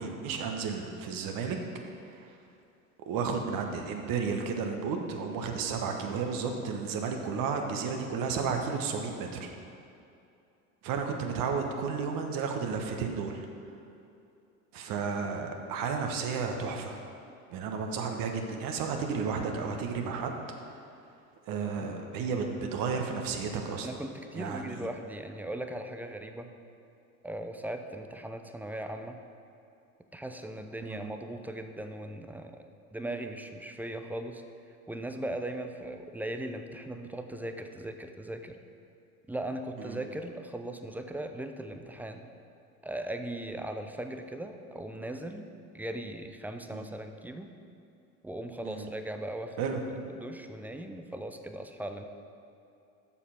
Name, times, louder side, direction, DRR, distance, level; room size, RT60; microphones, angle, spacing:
voice 1, 0.0-1.6 2.0-2.3 3.1-9.5 10.8-13.5 14.7-17.0 17.5-20.4 21.5-23.9 24.3-24.8 30.9-31.1 39.8-40.0 46.7-46.8 48.6-48.9 49.6-49.8, right 5 dB, 50° right, 3 dB, 1.2 m, -32 dB
voice 2, 23.8-26.5 27.2-29.2 30.1-32.6 32.9-34.4 34.9-38.6 39.3-42.3 42.8-45.5 45.7-47.5 48.2-49.6 50.1-52.1, right 1 dB, 5° right, 6 dB, 0.4 m, -38 dB
7.3 x 6.6 x 5.9 m, 2.6 s
hypercardioid pair, 75°, 43 cm